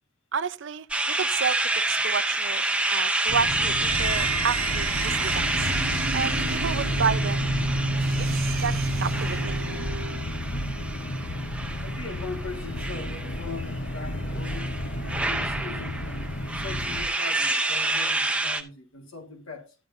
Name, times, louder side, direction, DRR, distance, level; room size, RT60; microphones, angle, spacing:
voice 1, 0.3-2.6 2.9-7.5 8.2-8.7 9.0-9.6, right 6 dB, 60° right, 0.5 m, -31 dB
sound 1, 0.9-18.6, right 2 dB, 5° right, 0.7 m, -29 dB
sound 2, 3.3-17.1, left 1 dB, 65° left, 1.1 m, -32 dB
sound 3, 3.7-10.3, right 2 dB, 85° right, 0.9 m, -30 dB
voice 2, 11.8-14.8 15.2-16.3 16.6-19.7, left 4 dB, 85° left, 1.9 m, -40 dB
11.5 x 9.1 x 2.7 m
head